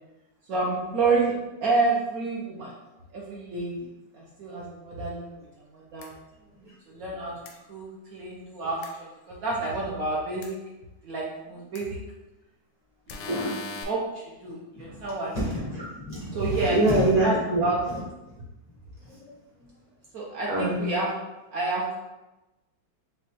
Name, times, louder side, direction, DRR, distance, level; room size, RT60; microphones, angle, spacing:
voice 1, 0.5-1.3 1.6-2.7 3.1-3.9 4.1-5.5 5.7-6.1 6.9-7.3 7.7-10.6 11.0-12.0 13.1-13.4 13.8-15.4 16.3-17.8 20.1-21.1 21.5-21.8, right 3 dB, 65° right, -4 dB, 0.9 m, -29 dB
sound 1, 6.0-6.1 7.5-7.6 8.8-8.9 10.4-10.5 11.8-11.9 13.1-13.8, left 3 dB, 85° left, 1.4 m, -38 dB
voice 2, 13.3-13.6 14.7-15.0 15.3-17.6 18.3-18.4 19.0-19.3 19.6-19.7 20.5-20.8, right 1 dB, 70° left, -8 dB, 0.3 m, -26 dB
6.1 x 2.3 x 2.8 m, 1.0 s
omnidirectional pair, 2.1 m